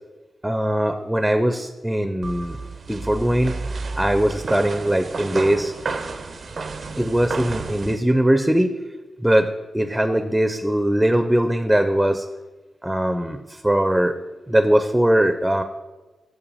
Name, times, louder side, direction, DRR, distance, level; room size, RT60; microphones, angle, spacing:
voice 1, 0.4-2.6 2.9-3.5 4.0-5.7 7.0-8.7 9.2-12.3 12.8-14.2 14.5-15.6, right 1 dB, 10° right, 9 dB, 0.5 m, -20 dB
sound 1, 2.2-8.0, right 3 dB, 60° right, 0.5 m, -31 dB
6.6 x 5.7 x 5.5 m, 1.2 s
cardioid pair, 60°, 0 cm